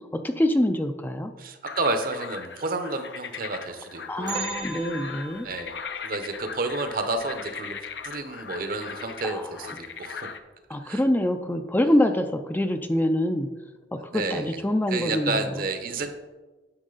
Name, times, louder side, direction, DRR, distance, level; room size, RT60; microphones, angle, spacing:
voice 1, 0.0-1.3 4.1-5.5 9.2-9.5 10.7-13.5 13.9-15.5, left 1 dB, 10° left, 7 dB, 0.4 m, -25 dB
voice 2, 1.4-4.5 5.4-5.7 6.0-7.8 8.0-10.3 10.7-11.0 14.1-14.6 14.9-16.1, right 3 dB, 55° right, 7 dB, 0.9 m, -30 dB
sound 1, 1.6-10.4, left 6 dB, 70° left, 0.7 m, -39 dB
Piano, 4.3-8.8, right 2 dB, 30° right, 0.6 m, -42 dB
Bell, 4.3-8.3 8.6-8.7 9.2-9.3 10.1-10.2 11.0-11.2 11.6-11.7, right 8 dB, 75° right, 1.4 m, -43 dB
9.8 x 6.3 x 4.0 m, 1.2 s
head